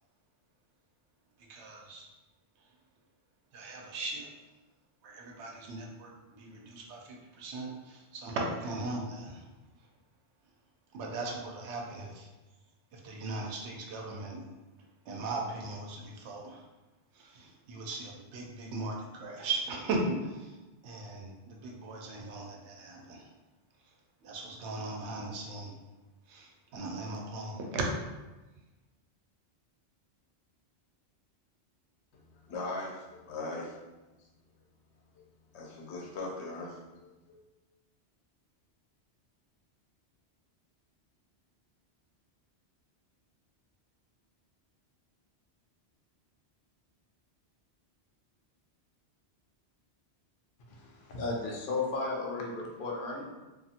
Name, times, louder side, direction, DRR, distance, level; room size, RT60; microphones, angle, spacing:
voice 1, 1.4-2.1 2.6-2.8 3.5-4.4 5.0-9.5 9.8-9.9 10.9-12.3 12.9-14.5 14.8-16.6 17.1-23.3 23.8-24.0 24.2-25.8 26.3-27.9, right 2 dB, 90° right, 0 dB, 0.9 m, -38 dB
voice 2, 32.4-33.8 35.5-36.8 37.3-37.4, left 2 dB, 90° left, -2 dB, 0.9 m, -39 dB
voice 3, 50.7-53.2, left 3 dB, 60° left, -1 dB, 0.7 m, -34 dB
2.5 x 2.4 x 2.7 m, 1.1 s
omnidirectional pair, 1.1 m